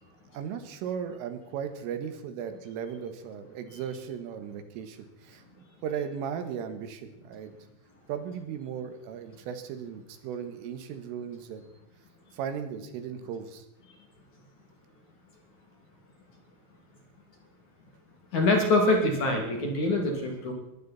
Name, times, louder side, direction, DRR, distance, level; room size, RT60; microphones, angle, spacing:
voice 1, 0.3-5.4 5.8-7.6 8.1-11.7 12.3-13.7, right 7 dB, 85° right, 8 dB, 4.1 m, -36 dB
voice 2, 18.3-20.5, left 2 dB, 45° left, 2 dB, 3.4 m, -24 dB
22.0 x 15.0 x 4.3 m, 0.92 s
omnidirectional pair, 5.7 m